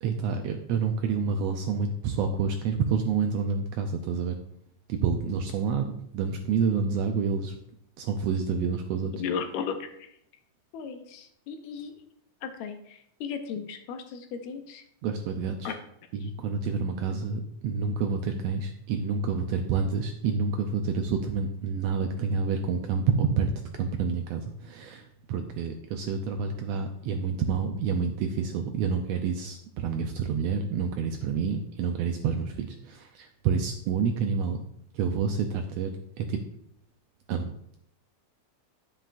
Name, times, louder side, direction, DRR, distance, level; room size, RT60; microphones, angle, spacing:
voice 1, 0.0-4.4 4.9-7.6 8.0-9.1 15.0-15.7 16.1-34.6 34.9-35.9 36.2-36.4 37.3-37.5, right 5 dB, 80° right, 5 dB, 1.5 m, -28 dB
voice 2, 9.2-10.1 10.7-11.9 12.4-14.8 15.6-15.8 16.2-16.3, left 6 dB, 75° left, 7 dB, 1.9 m, -35 dB
9.8 x 7.6 x 2.5 m, 0.72 s
omnidirectional pair, 3.4 m